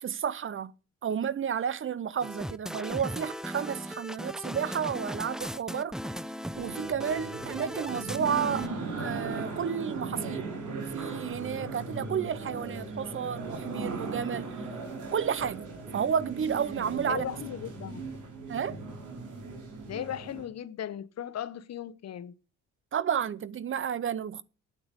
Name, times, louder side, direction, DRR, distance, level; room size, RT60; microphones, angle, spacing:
voice 1, 0.0-0.7 1.0-5.9 6.6-8.7 9.0-14.5 15.1-15.7 15.9-17.3 18.5-18.8 22.9-24.4, right 8 dB, 45° right, 0.7 m, -31 dB
sound 1, 2.2-8.7, equal, ahead, 0.5 m, -37 dB
sound 2, 6.5-20.4, right 3 dB, 85° right, 4.5 m, -38 dB
voice 2, 17.1-18.0 19.9-22.3, left 10 dB, 60° left, 1.0 m, -37 dB
9.1 x 8.6 x 8.2 m
cardioid pair, 90°, 30 cm